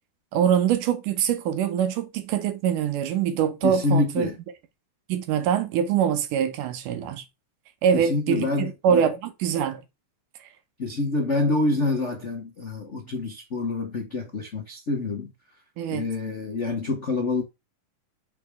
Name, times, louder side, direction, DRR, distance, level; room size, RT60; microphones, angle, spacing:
voice 1, 0.3-4.3 5.1-7.2 7.8-9.2 9.4-9.8 15.8-16.1, right 8 dB, 85° right, 2.5 m, -24 dB
voice 2, 3.6-4.4 7.9-9.1 10.8-15.3 15.9-17.4, left 2 dB, 85° left, 0.6 m, -27 dB
5.8 x 4.9 x 3.5 m
omnidirectional pair, 3.6 m